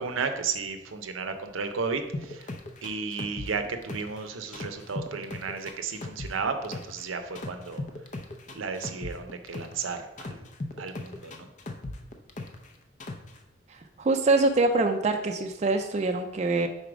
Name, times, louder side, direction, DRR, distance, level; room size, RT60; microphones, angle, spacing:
voice 1, 0.0-2.5 2.8-7.8 8.5-10.5 10.8-11.5, right 5 dB, 90° right, 7 dB, 0.6 m, -33 dB
sound 1, 2.1-4.2 4.5-7.0 7.4-9.8 10.2-12.7 13.0-13.4, left 2 dB, 35° left, 0.5 m, -37 dB
voice 2, 13.7-16.7, right 3 dB, 35° right, 5 dB, 0.3 m, -24 dB
4.7 x 4.1 x 5.0 m, 0.94 s
head